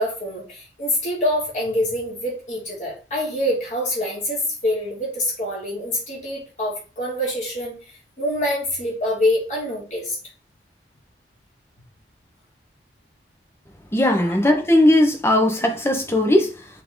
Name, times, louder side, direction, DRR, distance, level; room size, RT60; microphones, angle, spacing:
voice 1, 0.0-7.7 8.2-10.2, left 1 dB, 40° left, 2.9 m, -25 dB
voice 2, 13.9-16.7, left 1 dB, 15° left, 1.2 m, -18 dB
7.5 x 3.7 x 4.0 m
head